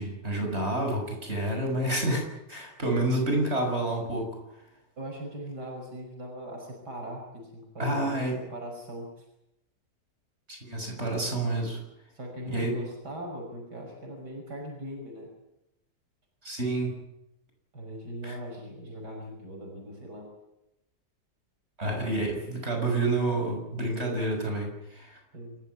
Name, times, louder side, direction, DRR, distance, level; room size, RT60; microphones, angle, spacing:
voice 1, 0.0-4.3 7.8-8.4 10.5-11.8 12.5-12.7 16.4-17.0 18.2-18.3 21.8-25.2, right 2 dB, 40° right, 2 dB, 6.7 m, -29 dB
voice 2, 5.0-8.2 8.5-9.2 12.1-15.3 17.7-20.3 25.3-25.6, equal, 85° right, 1 dB, 6.1 m, -40 dB
28.0 x 14.0 x 9.6 m, 0.88 s
omnidirectional pair, 1.7 m